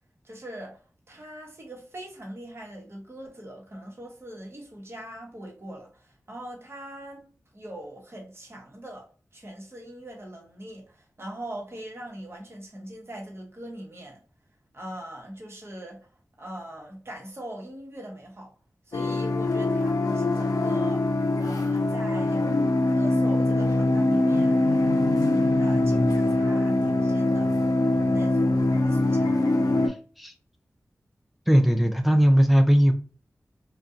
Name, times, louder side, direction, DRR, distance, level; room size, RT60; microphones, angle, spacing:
voice 1, 0.2-0.8 1.1-7.2 7.5-14.2 14.7-16.1 16.4-18.5 18.9-21.1 21.4-22.5 22.9-24.6 25.2-27.6 28.1-29.4, right 1 dB, 45° right, 1.0 m, -41 dB
sound 1, 18.9-29.9, left 2 dB, 85° left, 0.4 m, -23 dB
voice 2, 29.9-30.3 31.5-32.9, equal, ahead, 0.4 m, -19 dB
2.6 x 2.2 x 2.4 m
cardioid pair, 45°, 6 cm